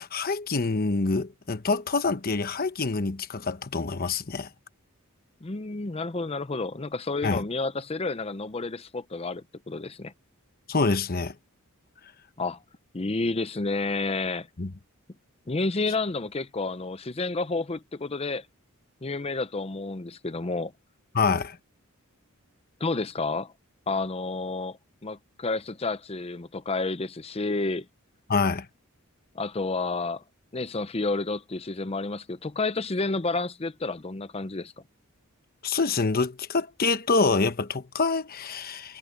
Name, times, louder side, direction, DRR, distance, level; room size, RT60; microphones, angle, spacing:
voice 1, 0.0-4.5 7.2-7.4 10.7-11.3 14.6-14.7 21.1-21.6 28.3-28.7 35.6-39.0, left 4 dB, 40° left, 1.0 m, -26 dB
voice 2, 5.4-10.1 12.4-12.6 12.9-14.5 15.5-18.5 19.0-20.7 22.8-23.5 23.9-27.9 29.3-30.2 30.5-34.7, left 3 dB, 25° left, 0.6 m, -30 dB
head